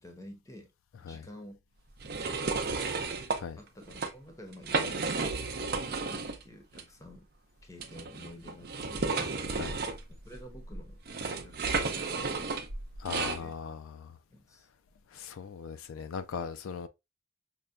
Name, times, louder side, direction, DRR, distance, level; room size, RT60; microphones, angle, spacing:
voice 1, 0.0-0.7 1.0-1.6 2.4-2.9 3.6-5.1 5.7-7.3 7.6-9.1 10.2-12.4 13.4-13.6 14.3-14.7, left 1 dB, 15° left, 0.7 m, -50 dB
sound 1, 2.0-3.4 3.8-4.1 4.5-6.4 6.7-6.8 7.8-13.4, right 4 dB, 50° right, 0.5 m, -33 dB
voice 2, 13.0-14.1 15.1-16.9, left 6 dB, 75° left, 0.3 m, -39 dB
5.4 x 2.2 x 2.4 m
head